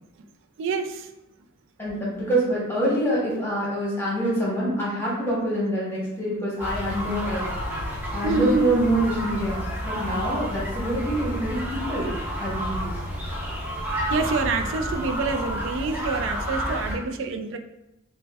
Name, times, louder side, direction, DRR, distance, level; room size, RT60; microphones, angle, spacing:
voice 1, 0.6-1.1 8.2-8.8 14.1-17.6, right 3 dB, 70° right, 7 dB, 0.3 m, -26 dB
voice 2, 1.8-7.5 8.1-12.1 12.4-12.9, right 1 dB, 10° left, -7 dB, 1.0 m, -26 dB
sound 1, 6.6-17.0, equal, 10° right, 0.6 m, -30 dB
5.1 x 2.1 x 2.3 m, 0.88 s
head